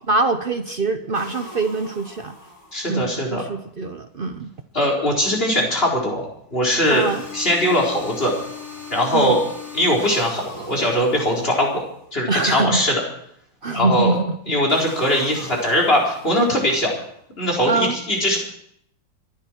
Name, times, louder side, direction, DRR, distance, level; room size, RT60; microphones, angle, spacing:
voice 1, 0.1-2.4 2.9-4.5 6.9-7.2 9.1-9.3 12.3-12.8 13.6-14.4 17.7-18.0, right 3 dB, 50° right, 8 dB, 0.6 m, -23 dB
sound 1, 1.1-3.1 6.8-12.1 14.7-17.1, left 3 dB, 45° left, 5.6 m, -39 dB
voice 2, 2.7-3.4 4.7-7.0 7.3-8.3 8.9-9.4 9.7-11.8 12.1-13.0 13.7-14.2 14.5-16.9 17.4-18.4, equal, 30° left, -2 dB, 4.4 m, -20 dB
26.0 x 11.5 x 4.5 m, 0.69 s
omnidirectional pair, 2.0 m